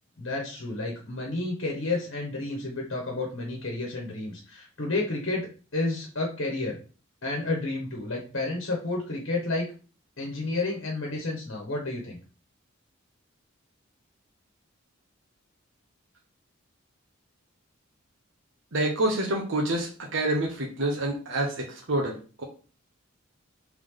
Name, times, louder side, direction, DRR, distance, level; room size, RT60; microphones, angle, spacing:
voice 1, 0.2-6.8 7.2-9.7 10.2-12.2, left 2 dB, 65° left, -1 dB, 1.2 m, -31 dB
voice 2, 18.7-22.4, right 1 dB, 65° right, 0 dB, 0.9 m, -27 dB
3.6 x 3.3 x 3.7 m, 0.37 s
head